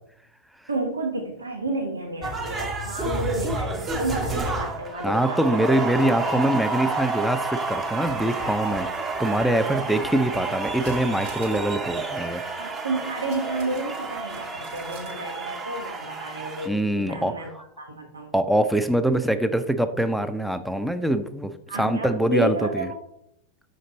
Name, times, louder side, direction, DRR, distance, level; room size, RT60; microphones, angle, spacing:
voice 1, 0.7-6.4 12.6-18.3 21.7-23.0, right 2 dB, 75° right, 2 dB, 1.2 m, -31 dB
sound 1, 2.2-16.7, right 3 dB, 20° right, 1.0 m, -30 dB
voice 2, 5.0-8.9 9.2-12.4 16.6-17.3 18.3-22.9, right 1 dB, ahead, 9 dB, 0.5 m, -24 dB
sound 2, 10.8-11.8 12.0-12.1 13.2-15.2 15.5-15.6, right 3 dB, 55° right, 1.4 m, -46 dB
5.8 x 5.2 x 3.9 m, 0.73 s
figure-of-eight pair, 90°, 0 cm